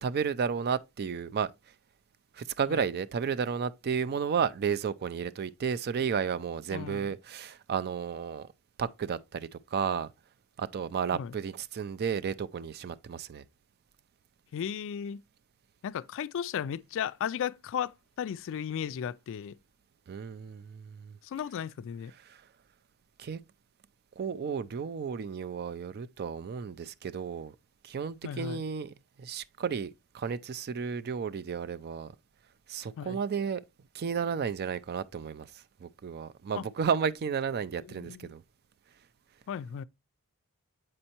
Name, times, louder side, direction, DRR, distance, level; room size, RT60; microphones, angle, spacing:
voice 1, 0.0-1.5 2.3-8.5 8.8-10.1 10.6-13.4 20.1-21.2 22.3-22.4 23.2-23.4 24.2-27.5 27.8-28.9 29.2-32.1 32.7-33.6 33.9-38.4, right 6 dB, 45° right, 0.4 m, -33 dB
voice 2, 6.7-7.1 11.1-11.3 14.5-15.2 15.8-19.6 21.2-22.1 28.2-28.6 33.0-33.2 36.6-36.7 37.9-38.3 39.5-39.8, left 8 dB, 60° left, 0.3 m, -35 dB
7.7 x 5.4 x 2.9 m
head